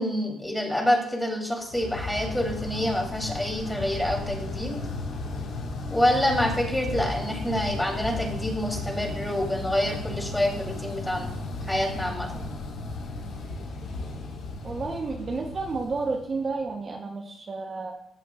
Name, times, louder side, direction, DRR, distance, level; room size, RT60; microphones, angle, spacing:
voice 1, 0.0-4.8 5.9-11.3 11.7-12.3, left 1 dB, 5° left, -1 dB, 3.2 m, -27 dB
sound 1, 1.7-16.7, left 2 dB, 75° left, 1.6 m, -35 dB
voice 2, 14.6-17.9, right 3 dB, 40° right, 1 dB, 1.0 m, -31 dB
15.0 x 5.9 x 2.4 m, 0.75 s
cardioid pair, 90°, 0 cm